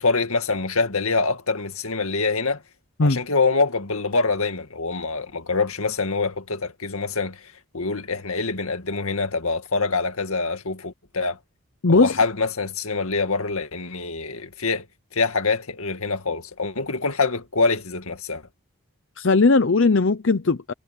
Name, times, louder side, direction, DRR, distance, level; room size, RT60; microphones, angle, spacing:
voice 1, 0.0-2.6 3.0-11.4 11.9-14.9 15.1-18.4, left 4 dB, 75° left, 2.1 m, -25 dB
voice 2, 11.8-12.2 19.2-20.7, left 3 dB, 55° left, 0.7 m, -18 dB
head